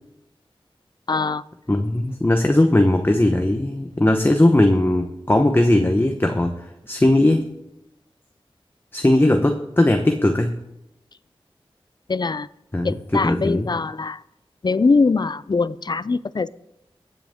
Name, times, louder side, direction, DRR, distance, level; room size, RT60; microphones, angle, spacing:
voice 1, 1.1-1.4 12.1-12.5 12.8-14.2 14.6-16.5, left 4 dB, 50° left, 17 dB, 0.4 m, -22 dB
voice 2, 1.7-6.6 6.9-7.4 8.9-10.6 12.7-13.7, left 1 dB, 20° left, 5 dB, 0.9 m, -18 dB
23.0 x 7.8 x 3.6 m, 0.87 s
wide cardioid pair, 60°, 10 cm